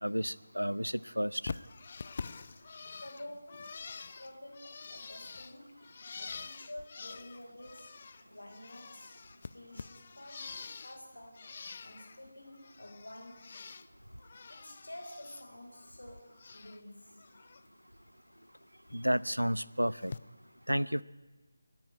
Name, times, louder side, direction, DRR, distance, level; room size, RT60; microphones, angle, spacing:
voice 1, 0.0-1.6 18.9-20.1 20.7-21.0, equal, 90° right, 19 dB, 0.7 m, -31 dB
Bird, 1.4-8.2 8.5-11.0 11.3-12.2 12.5-13.9 14.2-15.4 15.7-16.8 17.2-17.6 18.9-19.0 20.0-20.2, left 5 dB, 35° left, 0.6 m, -46 dB
voice 2, 3.0-9.2 9.5-13.5 14.5-17.2, left 1 dB, 70° left, 2 dB, 4.0 m, -50 dB
29.5 x 10.5 x 9.4 m, 1.2 s
figure-of-eight pair, 160°, 0 cm